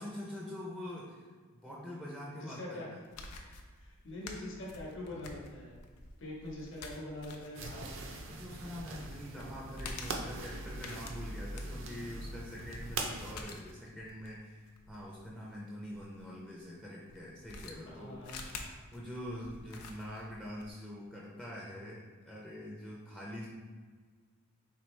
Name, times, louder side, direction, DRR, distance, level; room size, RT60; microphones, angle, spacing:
voice 1, 0.0-3.0 8.3-18.4 18.9-23.5, left 1 dB, 5° left, -5 dB, 0.5 m, -45 dB
voice 2, 2.4-2.9 3.8-5.8 6.2-8.1 17.8-18.5, left 1 dB, 55° left, -3 dB, 1.0 m, -44 dB
sound 1, 3.0-16.2 17.1-20.7, left 3 dB, 90° left, 0.5 m, -49 dB
sound 2, 7.5-13.3, right 2 dB, 60° right, 0.5 m, -42 dB
4.5 x 3.4 x 3.1 m, 1.5 s
head